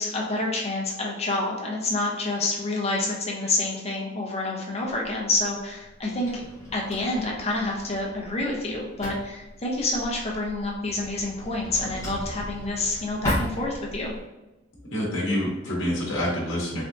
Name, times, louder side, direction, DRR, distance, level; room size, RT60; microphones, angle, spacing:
voice 1, 0.0-6.4 6.7-14.1, left 2 dB, 35° left, -2 dB, 0.7 m, -28 dB
Drawer open or close, 4.9-14.2, equal, 15° left, 1.0 m, -37 dB
voice 2, 14.9-16.8, equal, 90° left, -4 dB, 0.9 m, -27 dB
3.3 x 2.7 x 2.5 m, 1.0 s
head